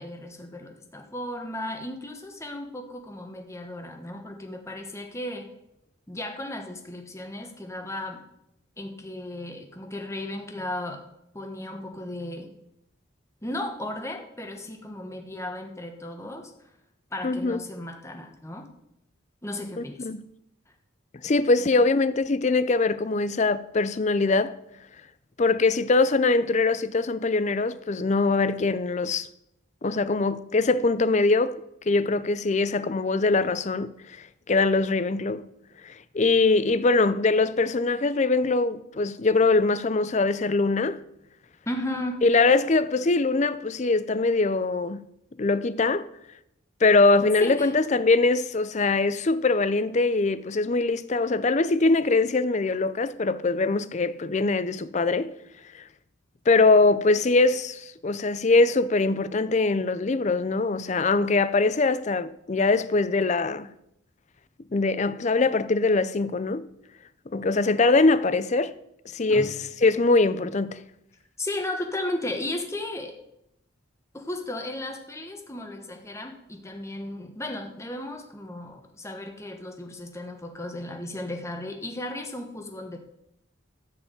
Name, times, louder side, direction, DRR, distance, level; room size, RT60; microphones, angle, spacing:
voice 1, 0.0-5.5 6.1-8.2 8.8-11.0 11.3-12.5 13.4-16.5 17.1-18.7 19.4-20.1 41.7-42.2 47.4-47.7 69.3-69.6 71.4-73.2 74.1-83.0, left 1 dB, 15° left, 1.2 m, -35 dB
voice 2, 17.2-17.6 20.0-20.2 21.2-24.6 25.4-29.3 29.8-31.6 31.9-33.9 34.5-35.4 35.8-41.0 42.2-45.0 45.4-46.1 46.8-55.3 55.7-55.8 56.5-63.7 64.7-66.7 67.3-68.7 69.1-69.5 69.8-70.8, left 3 dB, 35° left, 0.4 m, -22 dB
13.5 x 4.8 x 7.9 m
head